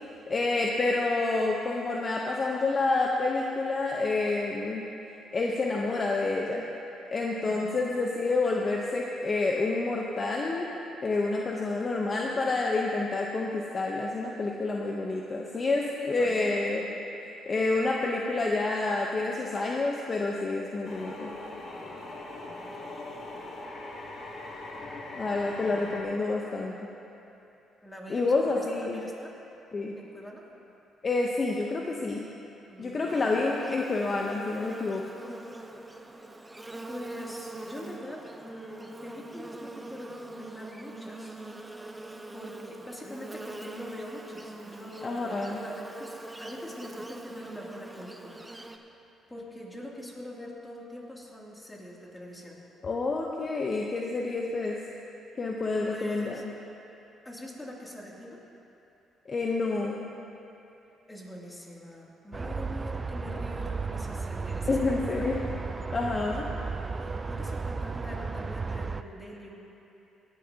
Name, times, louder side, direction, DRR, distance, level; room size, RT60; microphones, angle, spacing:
voice 1, 0.3-4.8 5.3-6.7 7.1-10.7 11.0-16.9 17.5-21.3 25.2-26.7 28.1-29.0 29.7-29.9 31.0-32.2 32.8-35.0 45.0-45.6 52.8-54.8 55.4-56.4 59.3-60.1 64.7-65.4 65.9-66.5, left 3 dB, 40° left, -1 dB, 0.9 m, -28 dB
voice 2, 7.4-7.8 15.8-16.9 22.5-22.9 27.8-29.4 30.0-30.4 32.7-33.4 35.2-35.6 36.9-41.4 41.9-42.0 42.3-48.9 49.3-52.6 55.8-56.4 57.2-58.4 61.1-65.3 66.3-66.5 66.9-69.6, equal, 15° left, -3 dB, 2.8 m, -44 dB
sound 1, 20.8-26.0, left 2 dB, 60° left, 1.7 m, -41 dB
Buzz, 33.1-48.8, right 2 dB, 15° right, 0.8 m, -43 dB
sound 2, 62.3-69.0, right 4 dB, 30° right, 0.4 m, -34 dB
18.0 x 11.5 x 2.9 m, 2.9 s
supercardioid pair, 70°, 0 cm